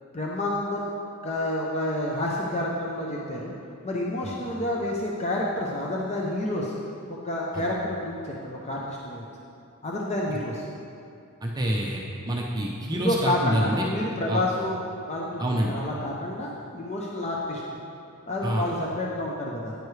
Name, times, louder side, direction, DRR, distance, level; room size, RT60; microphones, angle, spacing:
voice 1, 0.1-0.9 1.2-3.5 3.8-6.8 7.1-9.3 9.8-10.7 12.9-14.8 15.1-17.6 18.3-19.7, left 1 dB, 30° left, -3 dB, 0.6 m, -29 dB
voice 2, 11.4-13.9 14.3-14.4 15.4-15.7 18.4-18.6, right 1 dB, 20° right, -2 dB, 0.6 m, -27 dB
9.3 x 9.3 x 3.2 m, 2.6 s
head